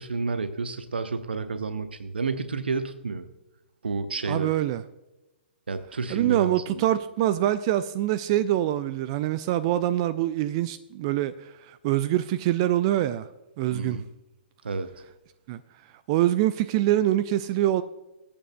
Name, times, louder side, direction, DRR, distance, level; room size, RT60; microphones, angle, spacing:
voice 1, 0.0-3.3 3.8-4.5 5.7-6.9 13.7-14.1 14.6-14.9, right 4 dB, 65° right, 0.8 m, -30 dB
voice 2, 4.3-4.8 6.1-13.3 13.6-14.0 15.5-15.6 16.1-17.8, right 13 dB, 30° right, 0.4 m, -24 dB
21.5 x 8.7 x 2.2 m
figure-of-eight pair, 120°, 6 cm